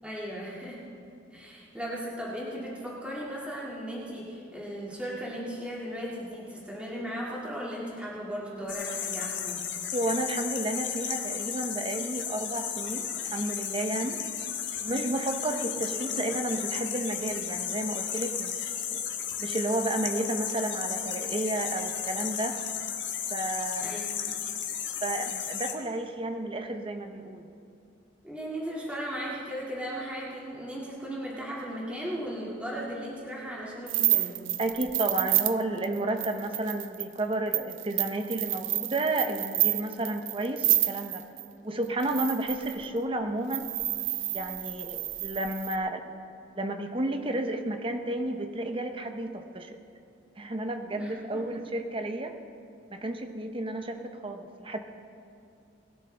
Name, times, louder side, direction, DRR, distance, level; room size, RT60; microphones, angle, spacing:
voice 1, 0.0-0.8 1.3-9.7 15.7-16.2 23.8-24.4 28.2-34.4 51.0-51.6, equal, 5° right, -6 dB, 2.2 m, -37 dB
sound 1, 8.7-25.7, left 8 dB, 65° left, 1.3 m, -34 dB
voice 2, 9.9-14.2 14.8-18.6 18.9-19.0 19.4-22.6 23.3-24.0 25.0-27.5 34.6-41.2 41.6-43.7 44.3-46.1 46.6-49.7 50.4-52.4 52.9-54.8, right 1 dB, 25° right, 6 dB, 0.8 m, -32 dB
sound 2, 33.9-41.4 42.0-42.9 43.5-45.8, right 15 dB, 80° right, 0.5 m, -29 dB
21.0 x 12.5 x 3.4 m, 2.6 s
head